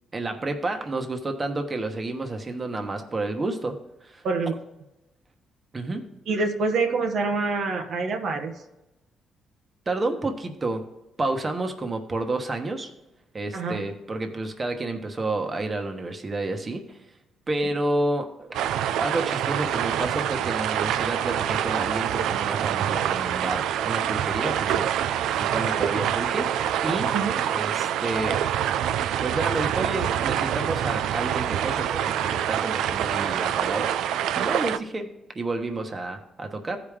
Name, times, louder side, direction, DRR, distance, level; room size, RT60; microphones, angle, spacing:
voice 1, 0.1-3.8 4.0-4.2 5.7-6.1 9.9-10.8 11.2-12.9 13.3-17.0 17.5-18.6 19.0-24.9 25.3-26.5 26.8-27.1 27.5-28.4 29.2-33.9 34.4-35.1 35.3-36.8, right 2 dB, 30° right, 5 dB, 1.2 m, -30 dB
voice 2, 6.3-8.6 13.5-13.8 27.1-27.4, right 4 dB, 70° right, 3 dB, 1.0 m, -26 dB
sound 1, 18.5-34.8, right 10 dB, 85° right, 0.4 m, -26 dB
15.0 x 5.0 x 3.6 m, 0.97 s
cardioid pair, 90°, 0 cm